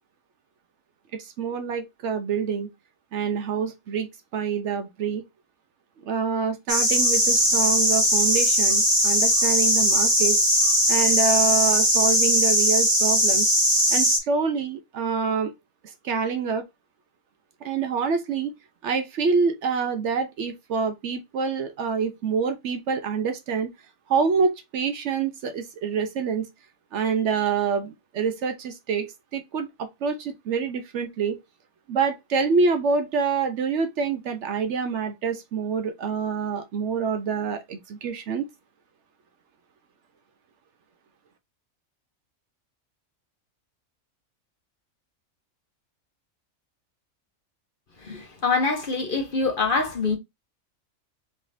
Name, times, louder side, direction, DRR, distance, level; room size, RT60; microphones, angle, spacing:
voice 1, 1.2-2.7 3.1-4.1 4.3-5.2 6.1-10.4 10.9-13.5 13.9-15.5 16.0-16.6 17.6-18.5 18.8-23.7 24.1-26.5 26.9-29.7 30.0-31.4 31.9-38.4, right 5 dB, 65° right, 0.8 m, -26 dB
sound 1, 6.7-14.2, equal, 15° right, 1.2 m, -20 dB
voice 2, 48.0-50.2, left 4 dB, 45° left, 0.9 m, -25 dB
4.2 x 3.4 x 2.5 m
omnidirectional pair, 1.4 m